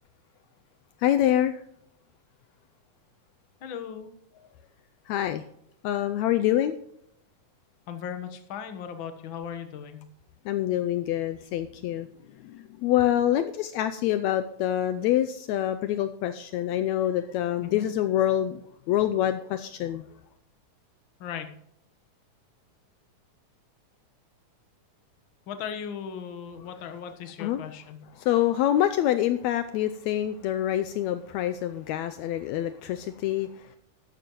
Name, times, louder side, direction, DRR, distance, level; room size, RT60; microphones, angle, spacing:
voice 1, 1.0-1.6 5.1-5.4 5.8-6.8 10.4-12.1 12.4-18.6 18.9-20.0 27.4-27.6 28.2-33.8, left 12 dB, 85° left, 10 dB, 1.6 m, -26 dB
voice 2, 3.6-4.1 7.9-10.0 17.6-17.9 21.2-21.5 25.5-28.0, left 8 dB, 60° left, 7 dB, 1.4 m, -37 dB
13.0 x 11.5 x 3.0 m, 0.74 s
omnidirectional pair, 3.7 m